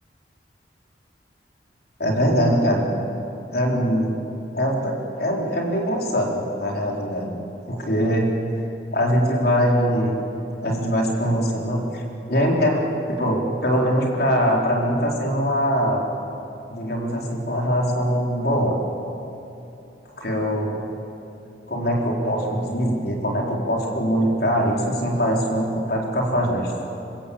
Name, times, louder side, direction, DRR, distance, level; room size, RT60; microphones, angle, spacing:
voice 1, 2.0-2.8 3.5-4.1 4.5-7.4 7.7-8.3 8.9-10.1 10.6-12.0 12.3-12.8 13.1-16.0 16.7-18.7 20.2-20.8 21.7-26.7, equal, 60° left, -1 dB, 4.1 m, -22 dB
25.5 x 24.0 x 8.7 m, 2.9 s
head